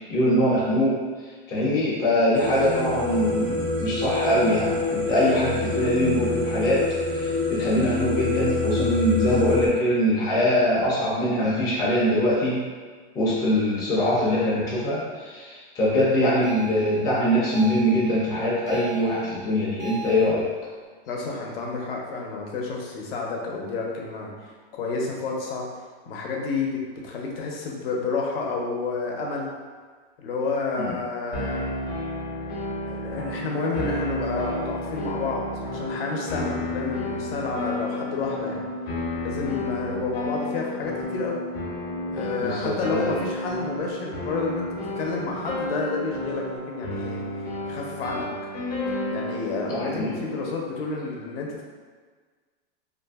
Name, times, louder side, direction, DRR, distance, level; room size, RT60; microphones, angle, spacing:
voice 1, 0.1-1.0 1.5-6.9 7.1-12.6 13.1-20.5 30.8-30.9 39.8-40.0 42.4-43.2 49.7-50.2, equal, 15° left, -7 dB, 0.4 m, -23 dB
sound 1, 2.3-9.7, left 3 dB, 45° right, 0.6 m, -26 dB
sound 2, 16.4-20.3, right 9 dB, 85° right, 0.7 m, -39 dB
voice 2, 21.1-25.7 26.1-29.5 30.2-31.7 32.4-38.6 39.2-41.4 42.1-47.2 47.7-48.3 49.1-51.6, left 3 dB, 75° left, -1 dB, 0.7 m, -30 dB
sound 3, 31.3-50.6, left 1 dB, 45° left, 0.7 m, -32 dB
2.6 x 2.5 x 2.3 m, 1.5 s
supercardioid pair, 155°, 30 cm